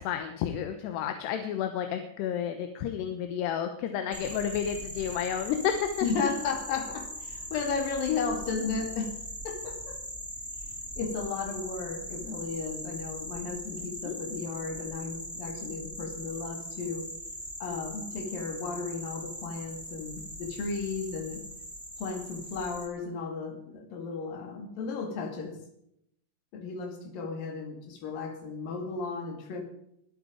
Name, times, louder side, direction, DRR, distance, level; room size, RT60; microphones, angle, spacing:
voice 1, 0.0-5.9 14.0-14.2, left 9 dB, 85° left, 7 dB, 3.2 m, -31 dB
sound 1, 4.1-22.9, equal, ahead, 2.4 m, -41 dB
voice 2, 6.0-9.2 9.4-10.0 11.0-17.1 17.6-21.4 22.0-25.6 26.5-29.6, left 5 dB, 60° left, 4 dB, 3.8 m, -34 dB
22.5 x 8.2 x 5.1 m, 0.75 s
omnidirectional pair, 4.7 m